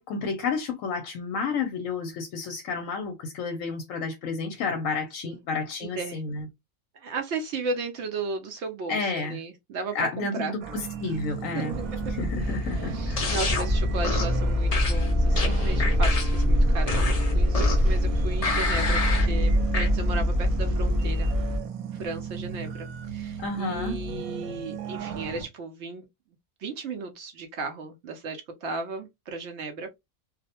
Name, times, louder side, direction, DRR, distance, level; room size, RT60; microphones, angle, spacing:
voice 1, 0.0-6.4 8.9-9.4 9.9-11.8 12.2-13.4 23.4-24.0, left 4 dB, 70° left, 0.9 m, -31 dB
voice 2, 5.8-6.2 6.9-10.5 11.5-11.6 12.5-21.3 21.9-26.0 26.6-29.9, right 3 dB, 65° right, 0.7 m, -35 dB
sound 1, 10.6-25.4, right 7 dB, 85° right, 1.1 m, -36 dB
sound 2, 11.7-21.6, left 1 dB, 30° right, 0.7 m, -24 dB
sound 3, 13.2-13.7 14.0-14.4 14.7-16.4 16.9-17.9 18.4-19.3 19.7-19.9, left 4 dB, 40° left, 0.5 m, -29 dB
2.5 x 2.0 x 2.7 m
omnidirectional pair, 1.5 m